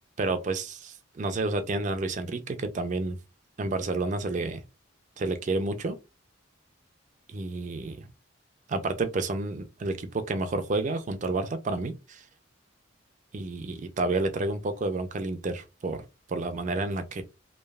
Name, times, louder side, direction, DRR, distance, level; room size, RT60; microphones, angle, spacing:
voice 1, 0.2-3.2 3.6-4.6 5.2-6.0 7.3-8.1 8.7-12.2 13.3-16.0 16.3-17.2, right 2 dB, 40° right, 0.4 m, -30 dB
3.2 x 2.3 x 2.3 m
head